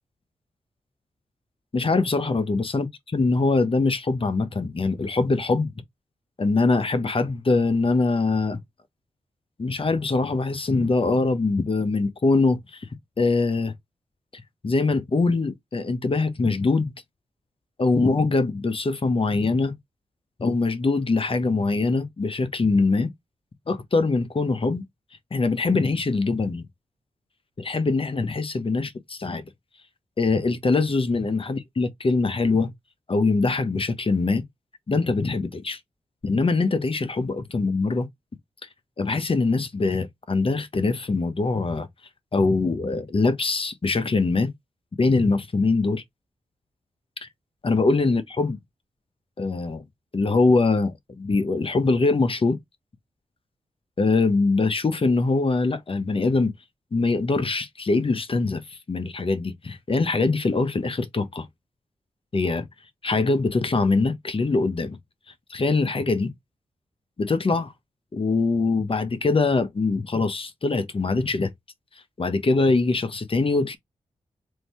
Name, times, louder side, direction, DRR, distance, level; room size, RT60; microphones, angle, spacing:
voice 1, 1.7-2.9 3.1-5.7 6.4-8.6 9.6-12.9 13.2-13.7 14.3-16.9 17.8-19.7 20.4-23.1 23.7-24.8 25.3-26.6 27.6-28.9 29.2-29.4 30.2-32.7 33.1-34.4 34.9-35.8 36.2-38.1 39.0-41.9 42.3-44.5 45.0-46.0 47.2-47.3 47.6-48.6 49.4-49.8 50.1-52.6 54.0-56.5 56.9-61.5 62.3-62.7 63.0-65.0 65.5-66.3 67.2-67.7 68.1-71.5 72.2-73.8, left 3 dB, 40° left, 0.9 m, -23 dB
3.1 x 2.7 x 4.3 m
cardioid pair, 45°, 14 cm